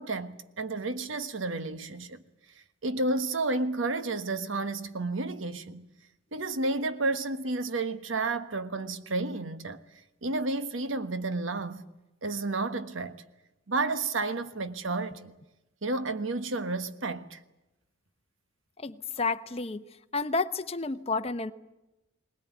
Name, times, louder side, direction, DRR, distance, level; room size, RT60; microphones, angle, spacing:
voice 1, 0.0-2.2 2.8-5.9 6.3-9.8 10.2-11.8 12.2-13.2 13.7-15.3 15.8-17.4, right 3 dB, 85° right, 1.3 m, -31 dB
voice 2, 18.8-19.9 20.1-21.5, left 3 dB, 30° left, 0.8 m, -30 dB
20.5 x 19.5 x 9.3 m
head